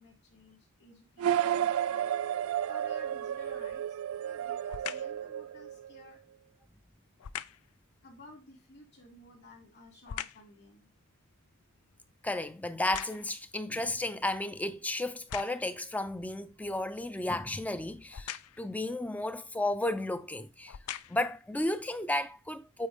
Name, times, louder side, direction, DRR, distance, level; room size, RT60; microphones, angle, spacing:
voice 1, 0.0-2.1 2.7-6.2 8.0-10.9, left 2 dB, 50° left, 2.7 m, -55 dB
sound 1, 1.2-6.0, right 10 dB, 70° right, 0.3 m, -32 dB
sound 2, 3.5-3.9 4.7-5.2 7.2-7.7 9.1-10.5 11.0-13.5 14.2-14.3 15.1-15.8 18.1-18.7 19.7-19.9 20.5-21.4 22.0-22.1, left 10 dB, 90° left, 0.4 m, -43 dB
voice 2, 12.2-20.7 21.1-22.9, left 1 dB, 5° left, 0.4 m, -33 dB
8.6 x 4.3 x 3.6 m
head